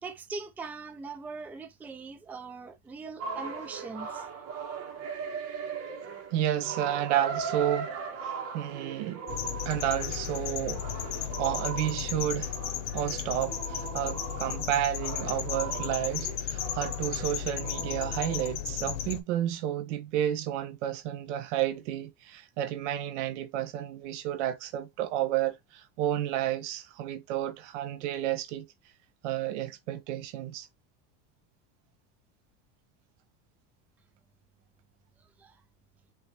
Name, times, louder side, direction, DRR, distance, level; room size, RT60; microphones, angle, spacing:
voice 1, 0.0-4.3 35.4-35.6, right 4 dB, 5° right, 0.4 m, -41 dB
sound 1, 3.2-18.5, right 5 dB, 40° right, 1.5 m, -39 dB
voice 2, 6.3-7.9 8.2-9.3 9.6-10.8 11.1-12.6 12.9-28.7 29.2-30.7, right 12 dB, 80° right, 1.2 m, -31 dB
sound 2, 9.3-19.2, left 11 dB, 80° left, 1.0 m, -35 dB
5.7 x 3.0 x 3.1 m
supercardioid pair, 150°, 35 cm